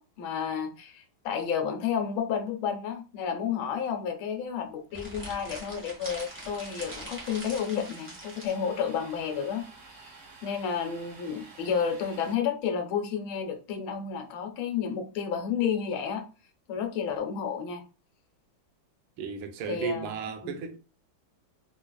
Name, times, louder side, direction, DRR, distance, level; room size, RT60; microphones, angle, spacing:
voice 1, 0.0-9.6 10.0-10.1 10.4-16.2 16.7-17.8 19.7-20.1 20.4-20.7, left 7 dB, 85° left, 1.5 m, -31 dB
sound 1, 4.9-8.6, right 1 dB, 10° right, 0.8 m, -43 dB
Domestic sounds home sounds, 6.0-12.4, right 4 dB, 55° right, 1.0 m, -50 dB
voice 2, 19.2-20.8, right 6 dB, 85° right, 1.4 m, -34 dB
3.6 x 3.2 x 2.2 m
omnidirectional pair, 2.2 m